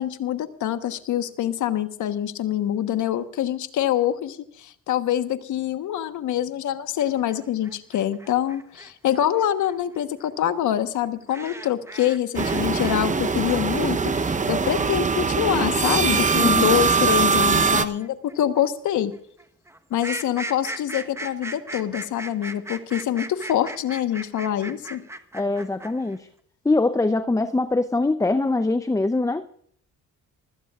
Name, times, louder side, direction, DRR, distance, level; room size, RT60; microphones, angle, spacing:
voice 1, 0.0-19.1 19.9-25.0, left 11 dB, 75° left, 10 dB, 1.3 m, -25 dB
sound 1, 7.0-13.0 13.2-26.2, right 1 dB, 10° right, 1.2 m, -38 dB
sound 2, 12.3-17.8, right 5 dB, 25° right, 0.9 m, -22 dB
voice 2, 16.4-16.8 25.3-26.3 26.6-29.5, left 2 dB, 10° left, 11 dB, 0.7 m, -23 dB
25.0 x 16.0 x 2.5 m, 0.65 s
cardioid pair, 90°, 30 cm